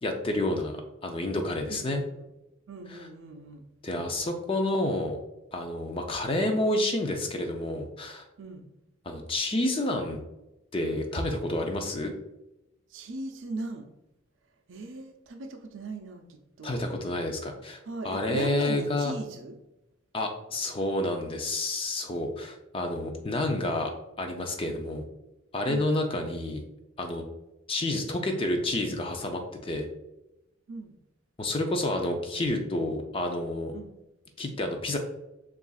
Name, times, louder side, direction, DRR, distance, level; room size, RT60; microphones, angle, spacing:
voice 1, 0.0-2.0 3.8-5.2 5.5-8.2 9.0-10.2 10.7-12.1 16.6-19.1 20.1-23.9 24.2-25.0 25.5-26.6 27.0-27.2 27.7-29.9 31.4-33.7 34.4-35.0, left 1 dB, 25° left, 4 dB, 0.4 m, -29 dB
voice 2, 1.7-2.3 2.7-4.1 8.4-8.7 12.9-13.9 14.7-16.9 17.8-19.6 23.1-23.3 25.7-25.9 30.7-30.9 33.7-33.9, right 3 dB, 65° right, 4 dB, 0.5 m, -39 dB
6.7 x 2.4 x 2.4 m, 0.94 s
head